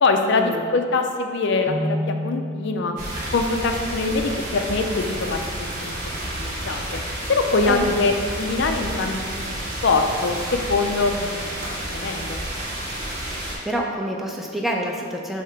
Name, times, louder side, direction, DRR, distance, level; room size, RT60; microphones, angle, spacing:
voice 1, 0.0-2.9 3.3-7.0 7.3-8.1 8.4-9.5 9.8-11.1 11.7-12.4, left 3 dB, 60° left, 5 dB, 0.4 m, -23 dB
Keyboard (musical), 1.7-3.5, equal, 65° right, 1.1 m, -29 dB
sound 1, 3.0-13.5, right 1 dB, 40° right, 1.5 m, -30 dB
voice 2, 7.7-8.1 13.2-15.4, right 1 dB, ahead, -1 dB, 0.4 m, -28 dB
6.5 x 2.9 x 5.7 m, 2.1 s
head